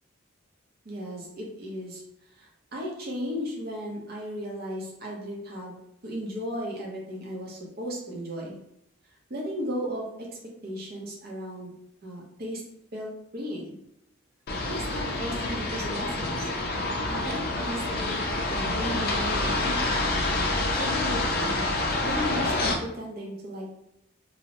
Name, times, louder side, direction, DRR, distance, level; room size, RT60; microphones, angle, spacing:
voice 1, 0.8-2.0 2.4-8.6 9.3-10.3 10.6-11.7 12.0-12.6 12.9-13.8 14.7-16.5 17.1-19.9 20.7-21.6 22.0-23.8, equal, 50° right, -2 dB, 0.6 m, -35 dB
sound 1, 14.5-22.8, left 2 dB, 50° left, 0.4 m, -27 dB
2.7 x 2.0 x 2.8 m, 0.78 s
head